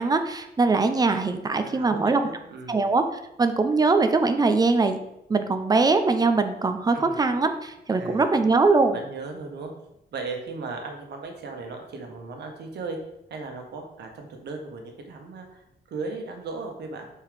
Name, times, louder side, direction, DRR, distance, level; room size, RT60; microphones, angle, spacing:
voice 1, 0.0-2.2 2.7-3.0 3.4-5.0 5.3-9.0, right 3 dB, 20° right, 8 dB, 0.5 m, -22 dB
voice 2, 1.6-2.8 6.9-7.2 7.9-8.3 8.9-9.7 10.1-13.0 13.3-17.1, right 3 dB, 75° right, 3 dB, 1.4 m, -37 dB
5.5 x 4.6 x 5.1 m, 0.84 s
wide cardioid pair, 155°, 18 cm